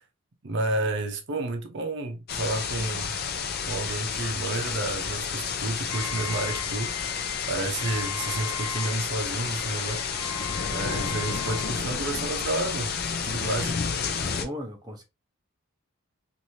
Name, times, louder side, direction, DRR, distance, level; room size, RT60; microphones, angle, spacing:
voice 1, 0.4-3.2 3.7-10.0 10.6-12.9 13.2-13.8, right 2 dB, 55° right, 0.7 m, -31 dB
sound 1, 2.3-14.5, left 6 dB, 45° left, 0.5 m, -31 dB
Wind instrument woodwind instrument, 5.9-11.8, left 7 dB, 80° left, 0.7 m, -39 dB
voice 2, 14.3-15.0, left 1 dB, 20° right, 0.7 m, -36 dB
3.1 x 2.6 x 2.6 m
head